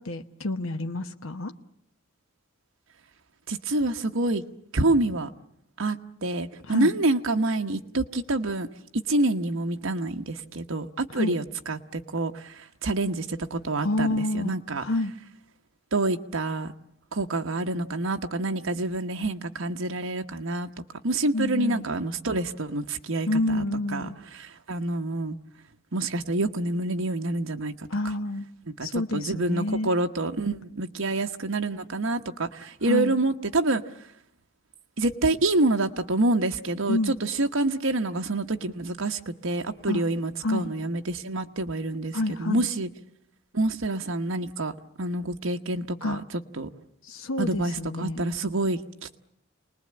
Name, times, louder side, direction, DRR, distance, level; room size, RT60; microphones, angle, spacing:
voice 1, 0.0-1.5 6.7-6.9 11.1-11.4 13.8-14.5 14.8-15.1 21.3-21.8 23.3-24.2 27.9-28.4 28.8-29.9 32.9-33.2 36.9-37.2 39.9-40.0 40.4-40.7 42.1-42.7 46.0-46.2 47.0-48.2, left 2 dB, 80° left, 1.0 m, -28 dB
voice 2, 3.5-4.4 4.7-5.3 5.8-8.7 8.9-14.8 15.9-16.7 17.1-20.7 21.0-23.6 23.9-25.4 25.9-27.9 28.8-33.8 35.0-42.9 43.5-44.7 45.0-46.2 46.5-46.7 47.4-49.2, right 2 dB, 75° right, 1.1 m, -27 dB
28.0 x 20.0 x 8.7 m
head